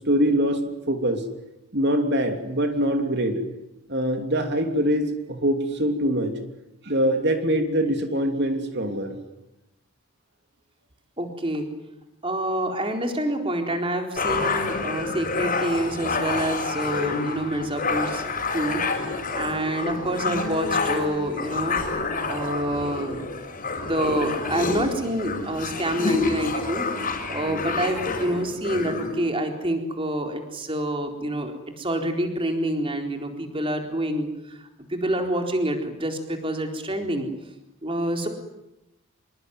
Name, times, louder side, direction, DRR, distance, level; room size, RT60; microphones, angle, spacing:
voice 1, 0.1-1.2 1.7-3.4 3.9-6.3 6.8-9.2, equal, 50° right, 5 dB, 3.1 m, -23 dB
voice 2, 11.2-11.7 12.2-18.2 18.5-18.8 19.3-21.8 22.3-23.2 23.8-37.3 37.8-38.3, right 1 dB, 25° right, 4 dB, 4.2 m, -27 dB
sound 1, 14.2-29.1, left 3 dB, 40° left, 5.9 m, -28 dB
26.5 x 23.0 x 9.5 m, 0.91 s
head